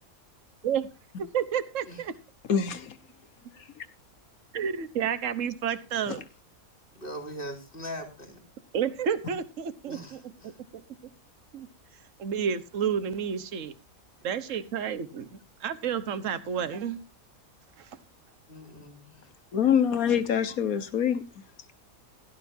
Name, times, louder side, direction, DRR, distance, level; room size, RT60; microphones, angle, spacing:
voice 1, 1.2-2.1 4.5-6.2 8.7-10.8 11.5-11.7 12.2-13.7 14.2-17.0 17.8-17.9 20.1-20.2, right 8 dB, 65° right, 1.5 m, -31 dB
voice 2, 2.5-3.0 3.8-3.9 19.5-21.2, left 8 dB, 85° left, 1.6 m, -25 dB
voice 3, 6.9-8.4 9.9-10.6 18.5-19.3, equal, 40° left, 4.0 m, -41 dB
17.0 x 12.5 x 2.7 m
omnidirectional pair, 1.5 m